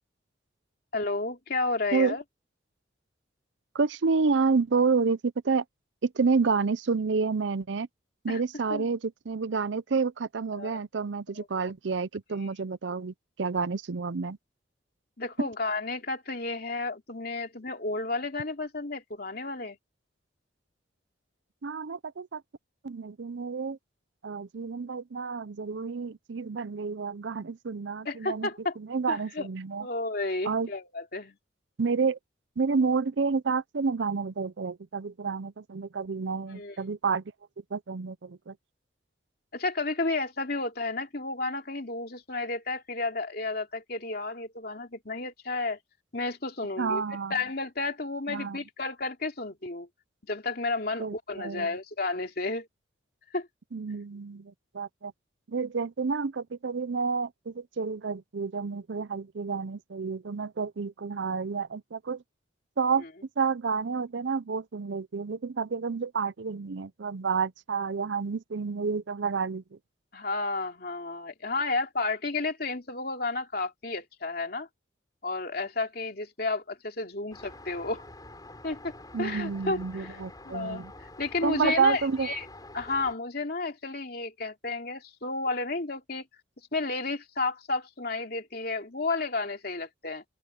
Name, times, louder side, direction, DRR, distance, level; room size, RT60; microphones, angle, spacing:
voice 1, 0.9-2.2 8.3-8.4 8.7-8.9 10.5-10.8 11.3-11.5 15.2-19.8 28.0-28.8 29.1-29.5 29.8-31.4 36.5-36.8 39.5-45.8 46.1-47.0 47.3-49.9 50.3-52.7 53.3-53.5 70.1-74.7 75.2-78.0 78.6-80.2 80.4-82.5 82.7-86.3 86.7-90.2, left 3 dB, 50° left, 2.9 m, -32 dB
voice 2, 3.7-5.6 6.0-7.9 8.2-14.4 15.4-15.5 21.6-22.4 22.8-23.8 24.2-28.5 28.8-29.9 30.4-30.7 31.8-32.2 32.6-37.2 37.7-38.5 46.8-47.4 48.3-48.6 51.0-51.7 53.7-55.1 55.5-62.2 62.8-63.0 63.4-69.6 79.1-80.9 81.4-82.3, right 5 dB, 70° right, 0.6 m, -29 dB
Traffic noise roadway noise, 77.3-83.1, left 2 dB, 20° left, 7.0 m, -47 dB
open air
head